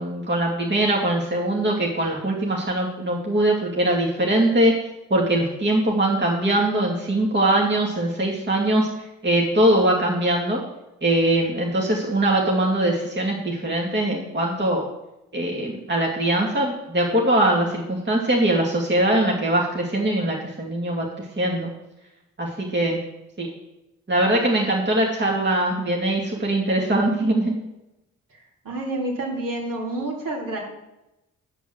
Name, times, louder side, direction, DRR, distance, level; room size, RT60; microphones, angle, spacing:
voice 1, 0.0-4.7 5.1-8.9 9.2-10.6 11.0-14.9 15.3-21.7 22.4-23.0 23.4-23.5 24.1-27.5, right 1 dB, 30° right, -2 dB, 2.4 m, -22 dB
voice 2, 28.6-30.6, right 2 dB, 65° right, -3 dB, 4.1 m, -28 dB
9.5 x 5.2 x 7.9 m, 0.93 s
supercardioid pair, 55°, 36 cm